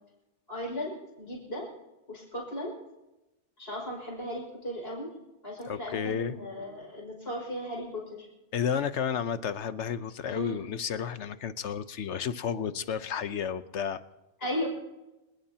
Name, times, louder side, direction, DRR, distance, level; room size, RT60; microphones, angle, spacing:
voice 1, 0.5-1.7 2.1-2.8 3.6-5.1 5.4-8.3 10.3-10.6 14.4-14.7, equal, 60° left, -2 dB, 6.1 m, -36 dB
voice 2, 5.7-6.4 8.5-14.0, left 7 dB, 85° left, 12 dB, 1.2 m, -32 dB
27.5 x 18.5 x 2.9 m, 0.99 s
omnidirectional pair, 1.2 m